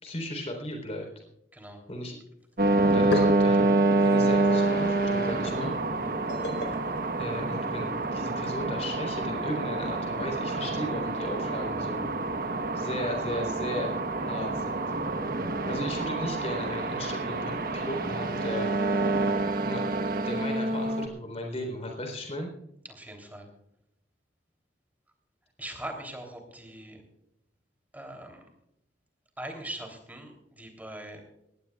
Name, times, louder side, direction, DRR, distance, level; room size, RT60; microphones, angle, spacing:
voice 1, 0.0-1.1 1.9-2.2 2.9-3.6 4.0-5.8 7.2-12.1 12.7-13.9 14.3-14.8 15.7-18.7 19.6-20.0 20.2-22.5, left 1 dB, 35° left, 3 dB, 3.9 m, -36 dB
sound 1, 2.4-2.5 2.8-8.0, left 1 dB, 80° left, 4.1 m, -37 dB
sound 2, 2.6-21.1, right 2 dB, 55° right, 1.2 m, -27 dB
voice 2, 23.0-23.4 25.6-27.0 27.9-28.4 29.4-30.3 30.6-31.2, right 1 dB, 10° right, 3 dB, 3.2 m, -41 dB
20.5 x 17.0 x 2.4 m, 0.80 s
head